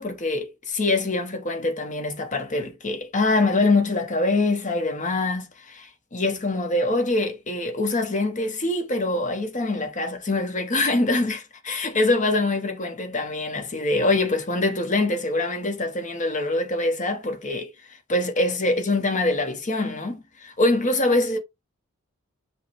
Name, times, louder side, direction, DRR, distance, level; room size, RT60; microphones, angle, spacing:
voice 1, 0.0-21.4, left 2 dB, 35° left, 1.0 m, -24 dB
5.6 x 2.1 x 4.4 m
head